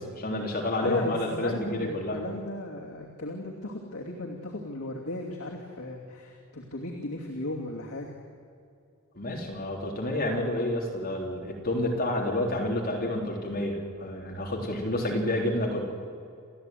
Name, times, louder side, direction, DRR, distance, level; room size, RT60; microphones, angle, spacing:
voice 1, 0.0-2.2 9.1-15.8, left 1 dB, 45° left, 0 dB, 3.5 m, -29 dB
voice 2, 0.8-8.1, left 2 dB, 75° left, -2 dB, 2.8 m, -35 dB
30.0 x 14.5 x 9.3 m, 2.4 s
head